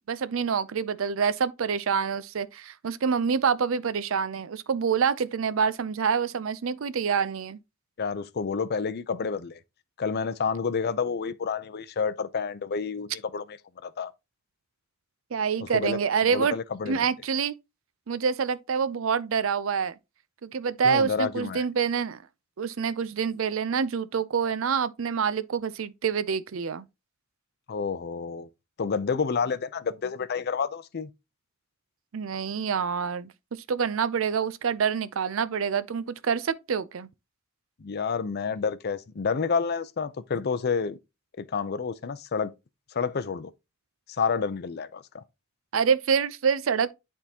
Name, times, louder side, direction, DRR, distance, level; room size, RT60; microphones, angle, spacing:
voice 1, 0.0-7.6 15.3-16.5 16.9-17.5 18.1-19.9 20.4-22.2 22.6-26.8 32.1-33.3 33.7-37.1 45.7-46.9, right 6 dB, 70° right, 0.5 m, -26 dB
voice 2, 8.0-9.6 10.0-13.6 13.8-14.1 15.6-16.0 16.3-17.1 20.8-21.6 27.7-28.5 28.8-31.1 37.8-41.0 41.4-42.5 42.9-43.5 44.2-45.2, left 5 dB, 50° left, 0.5 m, -29 dB
10.5 x 3.6 x 2.8 m
head